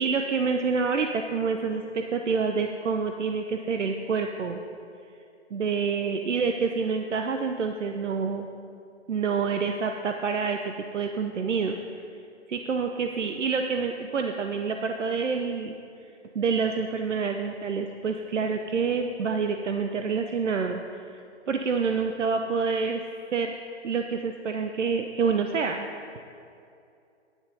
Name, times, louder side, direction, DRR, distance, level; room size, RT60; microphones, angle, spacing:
voice 1, 0.0-4.6 5.5-8.5 9.1-11.8 12.5-15.8 16.3-21.1 21.5-23.6 23.8-25.9, right 5 dB, 85° right, 5 dB, 0.8 m, -27 dB
9.9 x 9.0 x 5.4 m, 2.5 s
hypercardioid pair, 155°, 35 cm